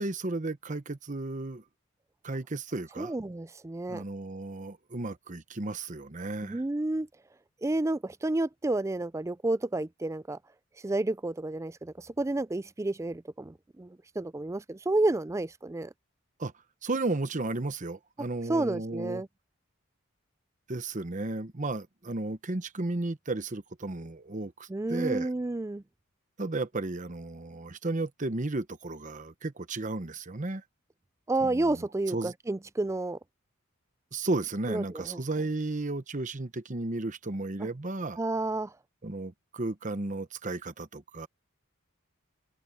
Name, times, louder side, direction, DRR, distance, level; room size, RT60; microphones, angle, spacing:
voice 1, 0.0-1.6 2.2-3.1 3.9-6.6 16.4-16.5 16.8-19.2 20.7-25.3 26.4-30.6 31.4-32.3 34.1-38.2 39.0-41.3, right 2 dB, 35° right, 1.0 m, -34 dB
voice 2, 3.0-4.0 6.4-7.1 7.6-10.4 10.8-15.9 18.5-19.3 24.7-25.8 31.3-33.2 34.7-35.2 37.6-37.7 38.2-38.7, right 2 dB, 15° right, 0.4 m, -30 dB
head